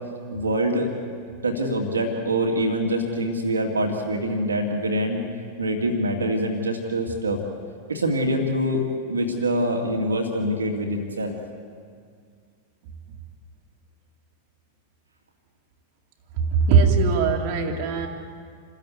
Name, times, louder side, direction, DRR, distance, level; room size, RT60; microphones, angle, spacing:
voice 1, 0.3-0.9 1.4-5.2 5.6-7.4 7.9-11.3, equal, 75° right, 2 dB, 2.3 m, -25 dB
voice 2, 16.4-18.1, right 5 dB, 45° right, 1 dB, 2.2 m, -20 dB
27.5 x 14.0 x 9.3 m, 2.1 s
figure-of-eight pair, 90°, 0 cm